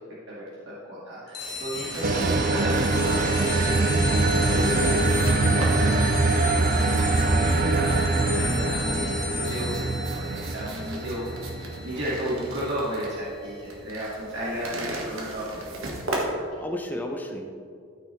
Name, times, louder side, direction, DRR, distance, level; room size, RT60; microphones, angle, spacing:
voice 1, 0.3-4.0 4.5-7.9 8.2-11.3 11.8-16.4, equal, 60° right, -8 dB, 2.0 m, -34 dB
sound 1, 1.3-13.4, left 5 dB, 50° left, 1.5 m, -35 dB
sound 2, 1.4-16.2, right 2 dB, 80° right, 1.5 m, -39 dB
sound 3, 2.0-12.8, right 3 dB, 40° right, 0.5 m, -24 dB
voice 2, 16.6-17.5, left 1 dB, 10° left, 2 dB, 0.8 m, -35 dB
13.5 x 6.1 x 3.3 m, 2.3 s
head